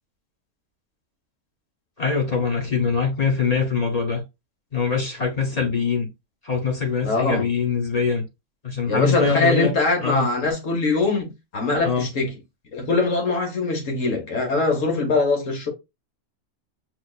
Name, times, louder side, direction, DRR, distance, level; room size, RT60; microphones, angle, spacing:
voice 1, 2.0-4.2 4.7-6.1 6.4-8.2 8.6-9.7 10.0-10.3 11.8-12.1, left 5 dB, 35° left, 0.9 m, -23 dB
voice 2, 7.0-7.4 8.9-12.3 12.7-15.7, left 3 dB, 85° left, 1.6 m, -22 dB
6.2 x 2.4 x 2.3 m
omnidirectional pair, 1.3 m